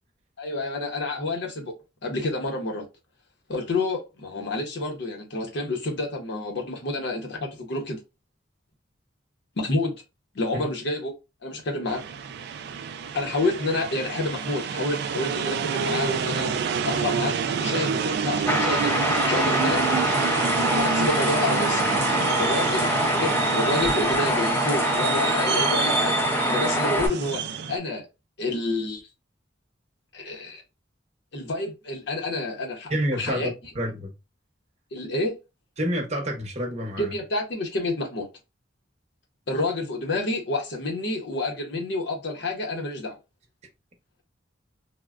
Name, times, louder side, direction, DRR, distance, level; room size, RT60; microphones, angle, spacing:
voice 1, 0.4-1.7 2.0-2.9 3.5-8.0 9.6-9.9 10.3-11.1 11.4-12.0 13.1-19.0 19.3-19.9 20.8-21.8 22.4-26.2 26.5-28.1 28.4-29.0 30.1-30.6 31.3-33.5 34.9-35.4 37.0-38.3 39.5-43.2, left 2 dB, 65° left, 0.8 m, -29 dB
sound 1, 11.9-27.8, right 6 dB, 60° right, 0.3 m, -28 dB
sound 2, 18.5-27.1, equal, 10° left, 0.5 m, -24 dB
voice 2, 32.9-34.1 35.8-37.1, equal, 35° right, 0.8 m, -28 dB
3.4 x 2.1 x 2.3 m
head